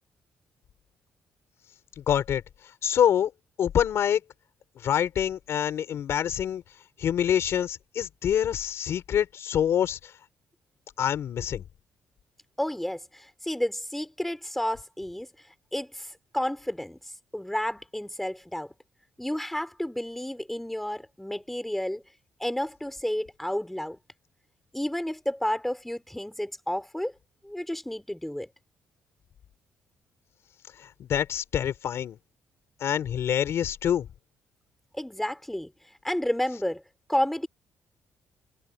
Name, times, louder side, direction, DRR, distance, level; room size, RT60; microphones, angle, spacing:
voice 1, 2.0-2.4 2.8-3.3 3.6-4.2 4.8-6.6 7.0-10.1 11.0-11.6 30.8-32.2 32.8-34.1, left 9 dB, 65° left, 4.3 m, -26 dB
voice 2, 12.6-15.3 15.7-17.0 17.3-18.7 19.2-22.0 22.4-24.0 24.7-27.1 27.4-28.5 34.9-35.7 36.0-36.8 37.1-37.5, left 1 dB, 5° left, 3.7 m, -31 dB
cardioid pair, 110°, 5 cm